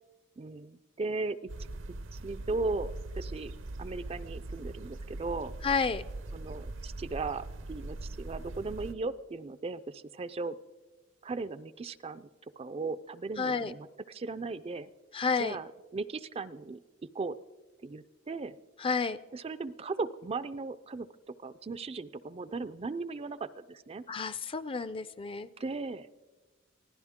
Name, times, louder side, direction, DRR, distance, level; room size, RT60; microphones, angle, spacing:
voice 1, 0.4-1.4 2.1-3.5 3.8-5.5 6.3-10.6 11.2-12.3 12.6-14.9 15.4-16.8 17.1-17.4 17.8-18.5 19.3-24.0 25.6-26.1, right 3 dB, 30° right, 14 dB, 0.4 m, -37 dB
sound 1, 1.5-8.9, right 2 dB, 70° right, 0.7 m, -41 dB
voice 2, 5.6-6.0 13.4-13.7 15.1-15.6 18.8-19.2 24.1-25.5, left 5 dB, 25° left, 14 dB, 0.5 m, -30 dB
24.0 x 16.0 x 3.6 m, 1.3 s
head